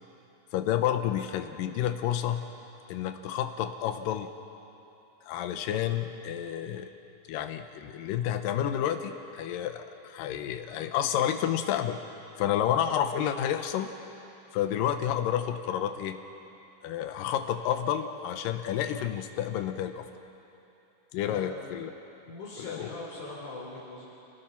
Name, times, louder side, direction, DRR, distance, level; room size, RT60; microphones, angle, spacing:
voice 1, 0.5-2.4 2.9-4.3 5.3-6.9 7.3-12.0 12.4-13.9 14.5-16.2 16.8-20.1 21.1-21.9 22.7-22.9, left 10 dB, 85° left, 7 dB, 2.5 m, -30 dB
voice 2, 22.3-24.0, left 3 dB, 65° left, -6 dB, 5.1 m, -40 dB
28.0 x 19.5 x 5.8 m, 2.9 s
omnidirectional pair, 3.8 m